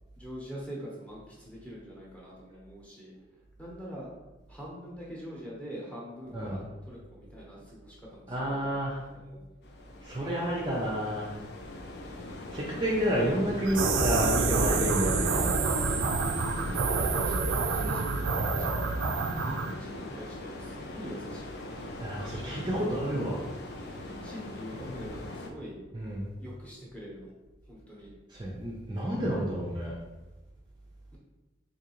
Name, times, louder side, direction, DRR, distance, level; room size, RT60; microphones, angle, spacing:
voice 1, 0.1-3.1 3.6-4.1 4.5-8.6 8.9-9.4 12.0-12.3 16.1-16.8 17.1-21.5 22.8-23.2 23.8-25.8 26.4-27.3 27.7-28.1, equal, 5° left, -6 dB, 0.9 m, -44 dB
voice 2, 8.3-9.0 10.0-11.3 12.5-15.5 22.0-23.4 25.9-26.3 28.3-29.9, equal, 25° right, -5 dB, 0.5 m, -30 dB
sound 1, 9.6-25.5, left 2 dB, 60° left, 0.4 m, -40 dB
sound 2, 13.6-19.7, right 4 dB, 85° right, 0.4 m, -28 dB
3.8 x 2.7 x 2.9 m, 1.1 s
head